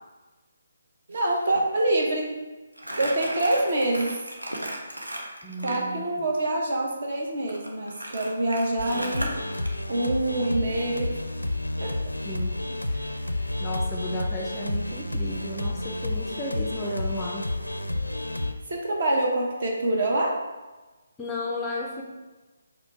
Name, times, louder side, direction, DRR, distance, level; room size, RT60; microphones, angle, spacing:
voice 1, 1.1-2.3 3.0-4.2 5.6-9.3 9.9-11.1 11.8-11.9 12.9-13.0 13.2-13.3 18.7-20.4, right 1 dB, 45° right, -1 dB, 0.9 m, -26 dB
Crumpling crinkling, 2.8-5.8 7.5-9.7, right 1 dB, 90° right, 0.8 m, -35 dB
voice 2, 5.4-6.3 12.2-12.6 13.6-17.5 21.2-22.0, left 1 dB, 15° left, -2 dB, 0.4 m, -33 dB
sound 1, 8.8-18.5, left 1 dB, 85° left, 0.4 m, -30 dB
4.9 x 2.1 x 4.6 m, 1.2 s
figure-of-eight pair, 145°, 0 cm